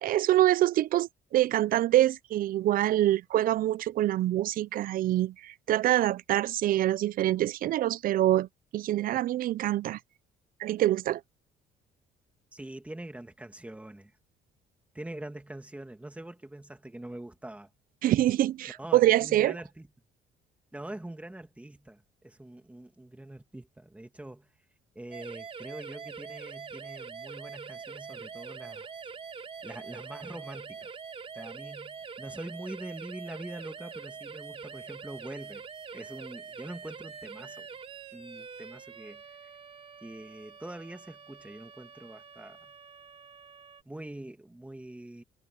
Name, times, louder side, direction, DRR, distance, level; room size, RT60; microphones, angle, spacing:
voice 1, 0.0-8.5 8.7-10.0 10.6-11.2 18.0-19.5, right 14 dB, 55° right, 0.5 m, -25 dB
voice 2, 12.5-14.1 14.9-17.7 18.7-19.9 20.7-24.5 24.9-28.9 29.6-30.9 31.3-35.6 35.9-37.7 38.1-39.2 40.0-42.6 43.9-45.2, right 1 dB, 10° right, 2.3 m, -44 dB
sound 1, 25.1-43.8, right 6 dB, 35° right, 2.7 m, -44 dB
cardioid pair, 110°, 17 cm